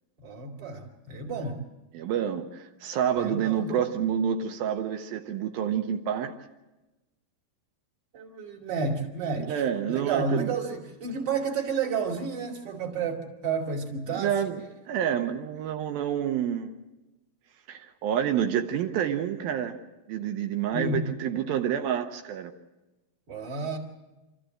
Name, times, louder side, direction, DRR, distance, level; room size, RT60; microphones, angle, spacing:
voice 1, 0.2-1.6 3.2-3.7 8.1-14.3 20.7-21.1 23.3-23.8, right 4 dB, 35° right, -1 dB, 2.6 m, -31 dB
voice 2, 1.9-6.3 9.5-10.5 14.1-16.7 17.7-19.8 20.1-22.5, right 9 dB, 80° right, 4 dB, 2.6 m, -28 dB
26.5 x 14.0 x 7.7 m, 1.1 s
omnidirectional pair, 4.3 m